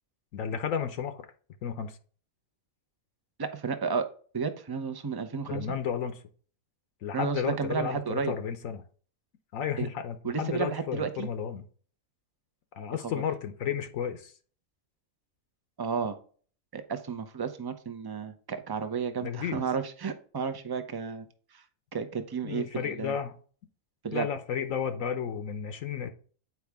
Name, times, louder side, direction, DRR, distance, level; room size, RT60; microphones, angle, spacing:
voice 1, 0.3-1.3 1.6-2.0 5.5-6.2 7.0-8.8 9.5-11.6 12.8-14.3 19.2-19.6 22.4-23.3 24.1-26.1, left 8 dB, 75° left, 9 dB, 1.1 m, -33 dB
voice 2, 3.4-4.1 4.3-5.8 7.1-8.3 9.8-9.9 10.2-11.3 13.0-13.2 15.8-16.2 16.7-21.3 21.5-21.6 21.9-23.1 24.0-24.3, right 5 dB, 30° right, 9 dB, 0.4 m, -32 dB
8.3 x 4.8 x 3.5 m, 0.43 s
omnidirectional pair, 1.4 m